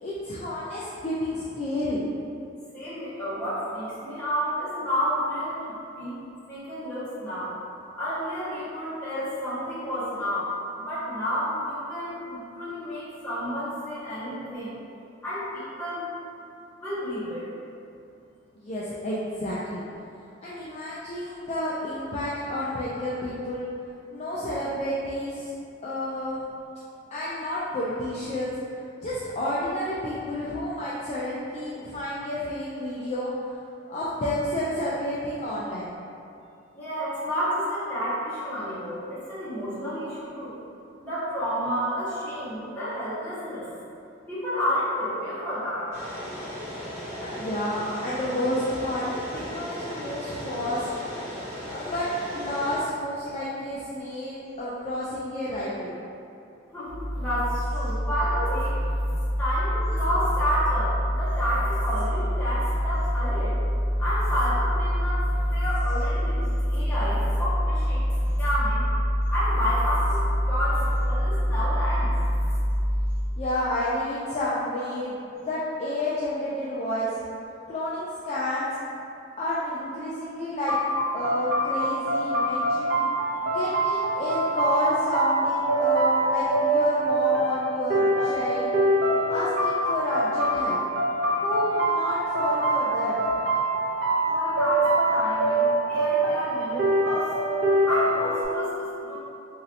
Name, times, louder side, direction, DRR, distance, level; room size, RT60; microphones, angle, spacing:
voice 1, 0.0-2.0 18.6-19.8 20.4-23.7 24.1-25.5 25.8-26.4 27.1-28.6 29.0-33.3 33.9-35.9 47.2-49.1 49.3-50.9 51.7-55.9 73.4-77.2 77.7-78.7 79.4-80.8 81.1-82.9 83.4-88.7 89.3-90.8 91.4-93.2, left 1 dB, 35° left, -8 dB, 0.3 m, -30 dB
voice 2, 2.7-6.2 6.5-7.5 8.0-14.8 15.2-16.0 16.8-17.4 36.7-40.5 41.0-43.6 44.3-45.9 56.7-58.7 59.4-63.6 64.0-65.2 65.5-68.0 68.4-68.9 69.3-72.1 94.3-97.3 97.9-99.2, equal, 10° left, -14 dB, 1.2 m, -30 dB
sound 1, 45.9-52.8, equal, 10° right, 1.5 m, -36 dB
sound 2, 56.9-73.4, equal, 65° left, 0.8 m, -26 dB
sound 3, 80.7-98.4, right 1 dB, 60° right, 0.6 m, -24 dB
3.0 x 2.7 x 2.6 m, 2.6 s
head